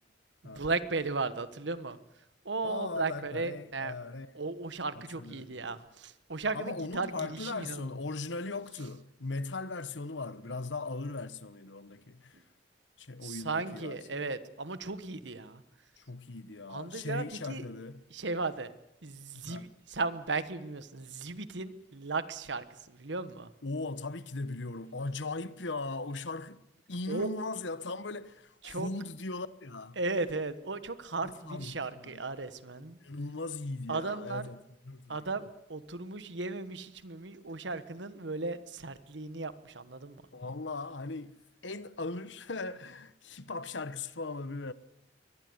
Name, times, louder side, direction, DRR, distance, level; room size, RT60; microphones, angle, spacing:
voice 1, 0.4-2.0 2.4-3.9 4.3-7.9 12.3-12.4 13.2-15.6 16.7-17.6 18.1-18.7 19.0-23.5 27.1-27.3 28.6-28.9 30.0-33.0 33.9-34.5 35.1-40.2, right 3 dB, 70° right, 1.3 m, -36 dB
voice 2, 2.6-4.3 4.9-5.8 6.5-12.4 13.0-14.3 16.0-18.0 19.4-19.7 23.6-26.6 26.9-30.0 31.2-32.2 33.0-34.6 34.8-35.2 40.3-41.3 41.6-44.7, left 3 dB, 70° left, 1.2 m, -39 dB
24.0 x 19.0 x 8.1 m
head